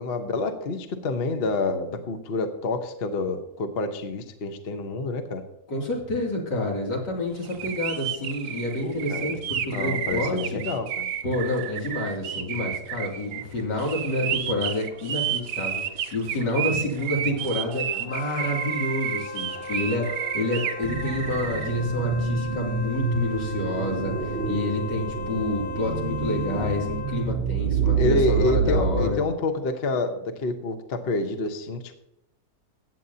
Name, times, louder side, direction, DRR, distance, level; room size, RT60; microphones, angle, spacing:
voice 1, 0.0-5.4 8.8-9.4 9.7-11.0 28.0-31.9, left 3 dB, 40° left, 7 dB, 1.0 m, -28 dB
voice 2, 5.7-10.6 11.2-29.2, left 1 dB, 80° left, -2 dB, 3.4 m, -29 dB
sound 1, 7.4-21.7, right 9 dB, 75° right, 1.4 m, -31 dB
Wind instrument woodwind instrument, 18.0-27.3, left 4 dB, 65° left, 0.4 m, -37 dB
sound 2, 20.8-29.1, right 5 dB, 45° right, 0.8 m, -27 dB
15.0 x 9.0 x 2.8 m, 0.82 s
omnidirectional pair, 1.8 m